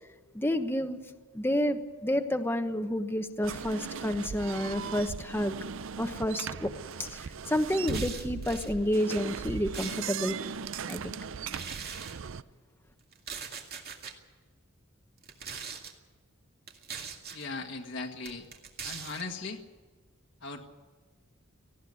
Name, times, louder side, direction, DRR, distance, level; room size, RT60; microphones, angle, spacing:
voice 1, 0.3-1.0 1.3-5.6 6.0-6.7 7.0-10.4 10.9-11.1, equal, 10° left, 7 dB, 1.1 m, -30 dB
sound 1, 3.4-12.4, right 6 dB, 65° right, 0.5 m, -38 dB
sound 2, 7.8-8.7 9.3-10.4 11.5-12.1 13.1-14.1 15.2-15.9 16.7-17.5 18.2-19.2, right 6 dB, 50° right, 2.3 m, -41 dB
voice 2, 17.3-18.5 18.8-19.6 20.4-20.7, left 3 dB, 60° left, 2 dB, 1.7 m, -38 dB
18.5 x 15.5 x 9.5 m, 1.4 s
head